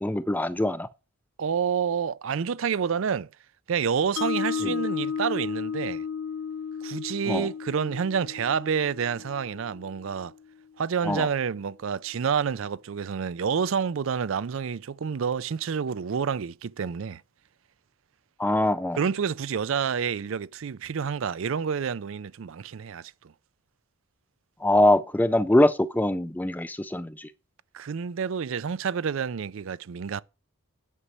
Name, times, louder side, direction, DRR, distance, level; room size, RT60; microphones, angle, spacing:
voice 1, 0.0-0.9 4.6-4.7 7.3-7.5 11.0-11.3 18.4-19.0 24.6-27.3, left 1 dB, 10° left, 0.4 m, -23 dB
voice 2, 1.4-3.3 3.7-6.0 6.8-10.3 10.8-17.2 19.0-23.1 27.7-30.2, right 6 dB, 65° right, 0.4 m, -28 dB
Mallet percussion, 4.2-10.3, left 6 dB, 70° left, 0.5 m, -33 dB
9.8 x 5.4 x 7.4 m
head